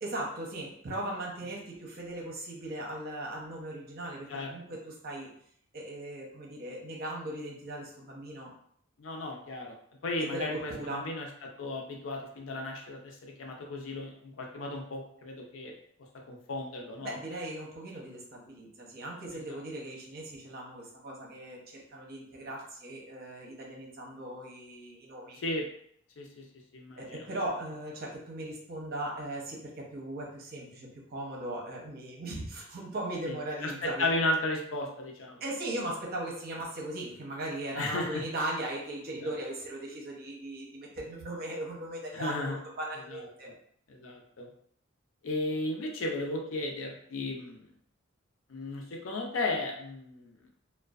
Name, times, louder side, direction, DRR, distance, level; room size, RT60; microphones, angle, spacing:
voice 1, 0.0-5.3 5.7-8.5 10.2-11.1 17.0-25.4 27.0-34.1 35.4-43.5, right 1 dB, 50° right, -2 dB, 0.7 m, -38 dB
voice 2, 9.0-9.8 10.0-15.7 16.3-17.2 19.5-19.6 25.4-25.6 26.2-26.4 26.7-27.3 33.3-33.4 33.6-35.4 37.7-38.2 42.1-42.6 43.1-43.3 43.9-44.5 45.2-47.7 48.5-50.3, left 2 dB, 90° left, 1 dB, 0.5 m, -34 dB
2.5 x 2.1 x 2.3 m, 0.65 s
head